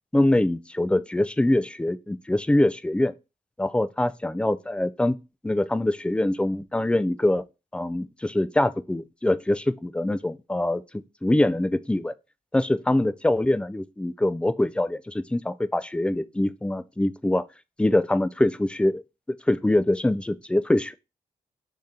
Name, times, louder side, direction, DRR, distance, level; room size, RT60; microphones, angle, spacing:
voice 1, 0.1-3.1 3.6-5.2 5.4-7.4 7.7-10.8 11.2-12.1 12.5-17.4 17.8-19.0 19.5-20.9, left 1 dB, 5° left, 0.3 m, -24 dB
3.2 x 2.8 x 3.6 m
supercardioid pair, 50°, 17 cm